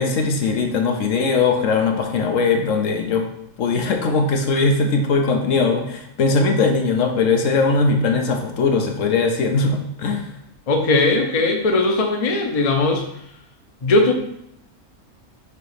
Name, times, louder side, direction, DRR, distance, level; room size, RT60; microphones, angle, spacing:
voice 1, 0.0-3.3 3.6-10.3, left 4 dB, 80° left, 3 dB, 1.2 m, -20 dB
voice 2, 10.7-13.0 13.8-14.1, left 2 dB, 35° left, 3 dB, 0.7 m, -18 dB
6.7 x 3.0 x 4.9 m, 0.75 s
omnidirectional pair, 1.3 m